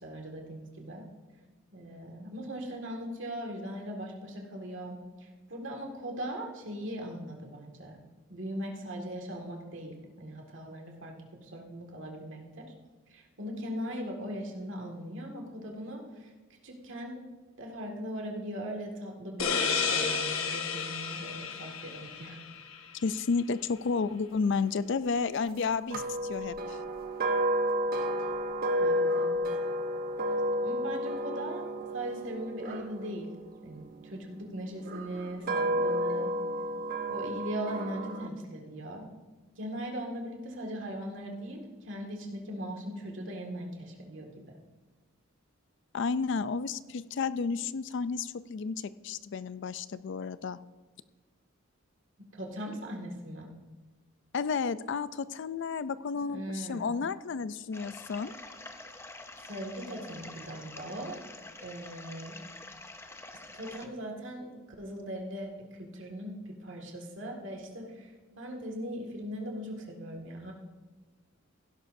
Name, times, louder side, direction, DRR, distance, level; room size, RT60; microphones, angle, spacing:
voice 1, 0.0-1.1 1.7-8.0 8.3-11.1 11.4-12.7 13.1-16.3 16.6-17.2 17.6-22.4 28.8-29.4 30.6-31.7 31.9-33.3 33.6-36.3 37.1-39.1 39.6-44.5 52.4-53.5 56.3-56.9 59.4-61.2 61.6-62.4 63.5-64.5 64.8-70.5, equal, 65° right, 1 dB, 2.0 m, -39 dB
sound 1, 19.4-22.8, left 6 dB, 85° left, 1.2 m, -32 dB
voice 2, 23.0-26.8 45.9-50.6 54.3-58.3, left 5 dB, 60° left, 15 dB, 0.4 m, -32 dB
sound 2, 25.9-34.1 34.8-38.3, equal, 45° right, 1.0 m, -31 dB
sound 3, 57.7-63.9, left 2 dB, 10° left, 0.6 m, -47 dB
16.0 x 11.5 x 2.6 m, 1.3 s
head